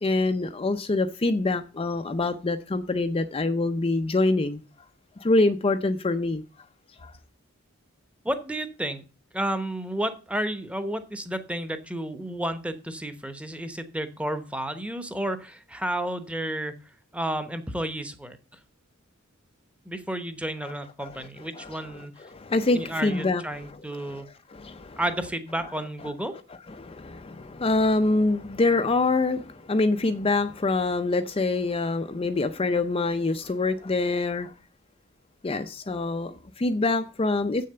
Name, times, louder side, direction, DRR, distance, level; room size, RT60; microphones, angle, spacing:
voice 1, 0.0-4.6 5.2-6.4 7.0-7.2 20.6-20.7 21.0-21.3 21.5-24.2 24.5-25.0 25.6-25.7 26.7-34.5 35.4-37.6, left 2 dB, 25° left, 0.5 m, -25 dB
voice 2, 8.2-9.0 9.3-16.8 17.1-18.4 19.9-22.1 22.7-24.3 25.0-26.3, right 1 dB, 5° right, 0.9 m, -31 dB
7.7 x 6.6 x 6.7 m
head